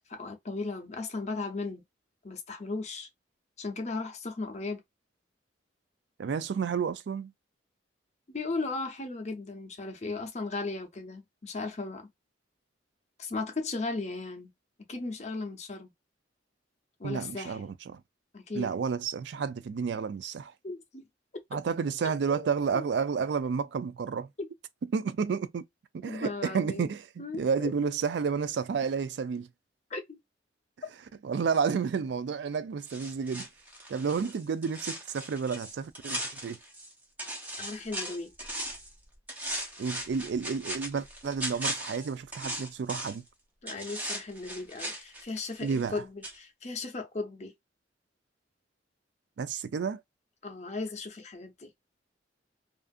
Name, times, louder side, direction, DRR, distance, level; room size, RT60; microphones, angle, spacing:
voice 1, 0.1-1.8 2.2-3.1 3.6-4.8 8.3-12.1 13.2-14.5 14.9-15.9 17.0-17.7 18.3-18.7 20.6-21.1 22.3-22.9 24.4-24.5 26.0-26.9 27.2-27.7 29.9-30.2 37.6-38.3 41.2-41.4 43.6-47.5 50.4-51.7, left 3 dB, 40° left, 0.7 m, -36 dB
voice 2, 6.2-7.3 17.0-18.0 18.5-20.5 21.5-24.3 24.9-25.6 25.9-29.5 31.2-33.5 33.9-36.6 39.8-43.2 45.6-45.9 49.4-50.0, right 6 dB, 65° right, 0.3 m, -31 dB
sound 1, 32.9-36.9 37.2-38.9 39.3-43.3 43.7-46.0 46.2-46.4, right 1 dB, 10° right, 0.7 m, -38 dB
2.6 x 2.4 x 2.3 m
head